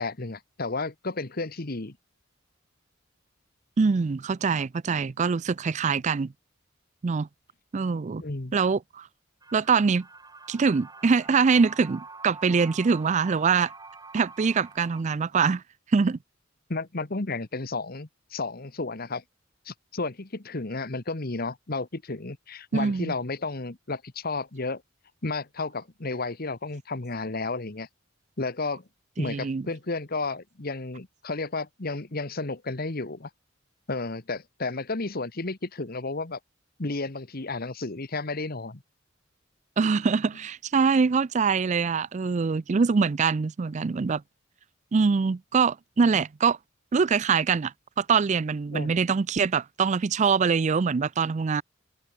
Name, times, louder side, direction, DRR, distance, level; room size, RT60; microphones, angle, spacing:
voice 1, 0.0-2.0 8.2-8.5 16.7-19.2 19.6-24.8 25.2-27.9 28.4-28.8 29.2-33.3 33.9-36.4 36.8-38.8 48.7-48.9, left 3 dB, 50° left, 1.4 m, -32 dB
voice 2, 3.8-6.3 7.0-7.3 7.7-8.2 8.5-9.1 9.5-10.1 10.5-13.7 14.1-15.6 15.9-16.2 22.7-23.1 29.2-29.6 39.8-44.2 44.9-46.6 46.9-51.6, right 5 dB, 35° right, 0.4 m, -24 dB
sound 1, 9.4-15.0, right 3 dB, 20° right, 4.6 m, -46 dB
head